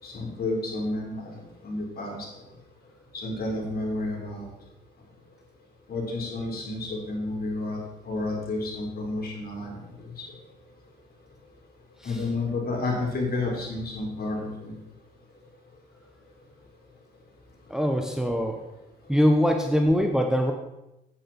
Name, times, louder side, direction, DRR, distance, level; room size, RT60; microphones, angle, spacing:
voice 1, 0.0-2.3 3.1-4.5 5.9-10.2 12.0-14.7 17.8-17.9, left 2 dB, 50° left, -1 dB, 4.3 m, -31 dB
voice 2, 17.7-18.6 19.1-20.5, equal, 5° right, 3 dB, 1.2 m, -23 dB
9.4 x 9.1 x 4.4 m, 0.93 s
supercardioid pair, 65°, 20 cm